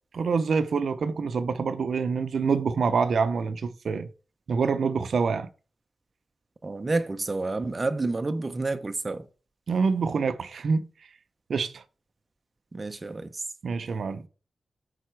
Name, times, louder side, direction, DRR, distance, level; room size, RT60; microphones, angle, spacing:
voice 1, 0.1-4.1 4.5-5.5 9.7-10.8 11.5-11.8 13.6-14.2, right 5 dB, 70° right, 0.6 m, -26 dB
voice 2, 6.6-9.3 12.7-13.5, right 3 dB, 25° right, 0.5 m, -29 dB
9.3 x 4.2 x 4.5 m
wide cardioid pair, 150°, 0 cm